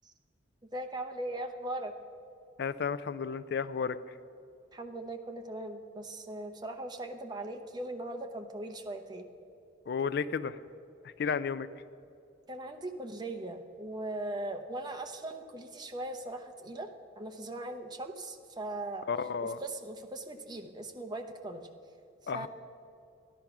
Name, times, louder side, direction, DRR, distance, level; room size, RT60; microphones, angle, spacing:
voice 1, 0.7-1.9 4.7-9.2 12.5-16.9 17.2-19.1 19.4-21.6 22.3-22.5, right 1 dB, 20° right, 5 dB, 0.8 m, -39 dB
voice 2, 2.6-4.0 9.9-10.6 11.2-11.7 19.1-19.6 22.3-22.5, left 6 dB, 60° left, 14 dB, 0.4 m, -32 dB
13.5 x 10.5 x 5.9 m, 2.7 s
head